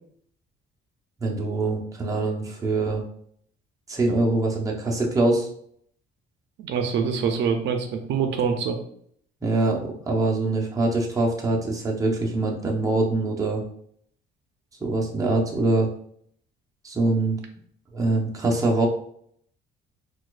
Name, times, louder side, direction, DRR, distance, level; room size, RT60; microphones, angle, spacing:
voice 1, 1.2-3.0 3.9-5.5 9.4-13.6 14.8-15.9 16.8-17.4 17.9-18.9, right 2 dB, 15° right, -1 dB, 0.7 m, -24 dB
voice 2, 6.6-8.8, right 6 dB, 70° right, 5 dB, 0.5 m, -25 dB
4.1 x 2.4 x 2.4 m, 0.65 s
cardioid pair, 135°, 19 cm